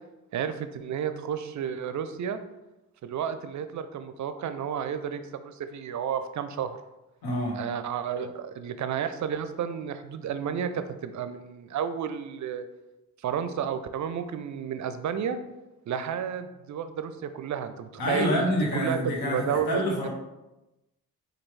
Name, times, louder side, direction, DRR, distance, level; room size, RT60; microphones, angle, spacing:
voice 1, 0.3-2.4 3.0-6.8 7.5-12.6 13.2-15.4 15.9-20.1, right 8 dB, 50° right, 10 dB, 0.4 m, -32 dB
voice 2, 7.2-7.6 18.0-20.1, left 1 dB, 75° left, -2 dB, 1.1 m, -27 dB
4.5 x 2.4 x 3.2 m, 1.0 s
supercardioid pair, 45°, 37 cm